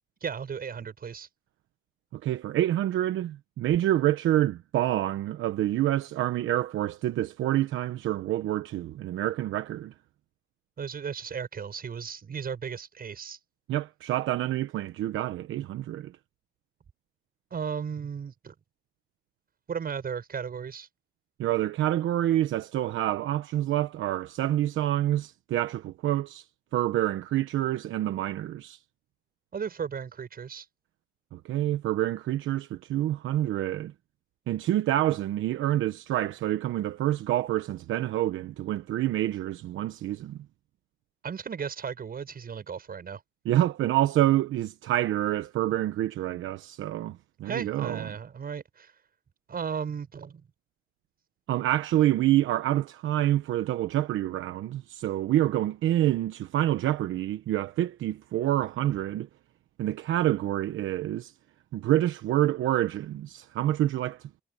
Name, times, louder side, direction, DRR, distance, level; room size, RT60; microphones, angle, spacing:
voice 1, 0.2-1.3 10.8-13.4 17.5-18.5 19.7-20.9 29.5-30.7 41.2-43.2 47.4-48.9 49.5-50.4, right 7 dB, 50° right, 7.5 m, -35 dB
voice 2, 2.1-9.9 13.7-16.1 21.4-26.4 26.7-28.8 31.3-33.9 34.5-40.4 43.4-48.0 51.5-59.3 59.8-61.3 61.7-64.3, right 13 dB, 80° right, 1.0 m, -27 dB
cardioid pair, 90°, 20 cm